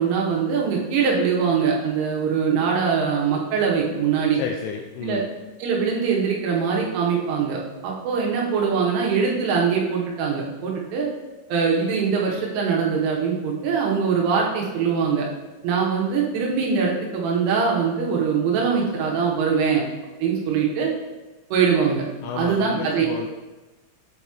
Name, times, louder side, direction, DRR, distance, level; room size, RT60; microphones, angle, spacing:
voice 1, 0.0-4.4 5.0-5.2 5.6-11.1 11.5-15.3 15.6-19.8 20.2-20.9 21.5-22.0 22.3-23.1, right 6 dB, 85° right, -2 dB, 3.4 m, -22 dB
voice 2, 4.3-5.3 22.2-23.3, left 7 dB, 85° left, 1 dB, 2.7 m, -31 dB
8.0 x 4.8 x 2.9 m, 1.1 s
omnidirectional pair, 5.8 m